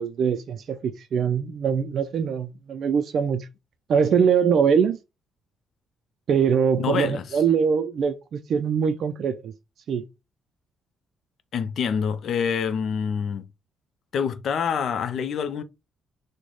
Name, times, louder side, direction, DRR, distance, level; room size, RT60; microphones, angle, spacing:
voice 1, 0.0-3.5 3.9-5.0 6.3-9.5 9.9-10.1, right 6 dB, 65° right, 0.3 m, -23 dB
voice 2, 6.8-7.4 11.5-13.4 14.1-15.6, left 7 dB, 65° left, 0.4 m, -26 dB
3.1 x 2.1 x 3.8 m
cardioid pair, 90°, 0 cm